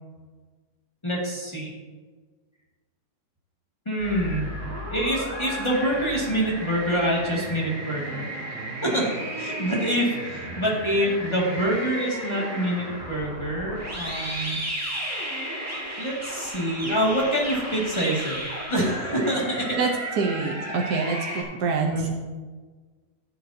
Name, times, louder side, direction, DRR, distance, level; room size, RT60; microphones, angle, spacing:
voice 1, 1.0-1.7 3.9-4.5 4.9-9.1 9.4-14.6 16.0-18.4 18.7-19.8 21.8-22.1, equal, 15° left, -4 dB, 2.1 m, -26 dB
sound 1, 4.0-21.4, right 1 dB, 10° right, 1.7 m, -34 dB
voice 2, 20.2-22.1, right 4 dB, 65° right, 0 dB, 1.3 m, -26 dB
14.0 x 7.6 x 2.8 m, 1.4 s
omnidirectional pair, 1.9 m